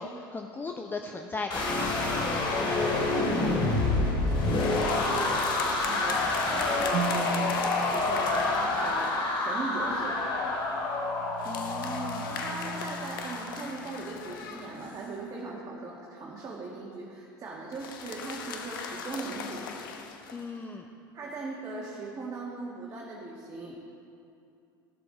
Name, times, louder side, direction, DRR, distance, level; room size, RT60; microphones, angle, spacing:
voice 1, 0.0-1.7 11.5-12.3 20.3-20.9, left 3 dB, 20° left, 3 dB, 0.7 m, -37 dB
sound 1, 1.5-13.6, left 2 dB, 45° left, 2.2 m, -28 dB
voice 2, 2.7-10.2 12.4-19.7 20.7-20.8 21.1-23.8, right 3 dB, 30° right, -4 dB, 1.7 m, -39 dB
sound 2, 4.3-9.2 11.4-15.2 17.7-20.5, left 5 dB, 75° left, 1.0 m, -39 dB
sound 3, 6.9-7.5 10.4-13.9, right 6 dB, 50° right, 1.0 m, -38 dB
15.5 x 6.9 x 3.9 m, 2.6 s
hypercardioid pair, 85°, 11 cm